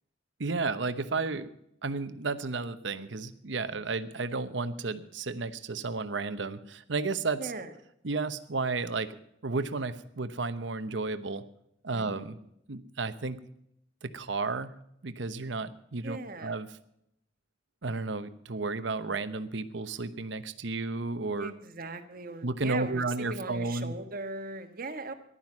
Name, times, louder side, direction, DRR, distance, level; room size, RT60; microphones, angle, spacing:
voice 1, 0.4-1.5 1.8-7.4 8.0-9.2 9.4-11.4 11.8-12.4 12.7-13.4 14.0-14.7 15.0-16.7 17.8-21.5 22.4-23.9, right 3 dB, 70° right, 11 dB, 1.0 m, -32 dB
voice 2, 7.4-7.7 11.9-12.5 16.0-16.6 21.3-25.1, right 3 dB, 50° right, 7 dB, 1.4 m, -39 dB
15.0 x 11.5 x 6.1 m, 0.75 s
head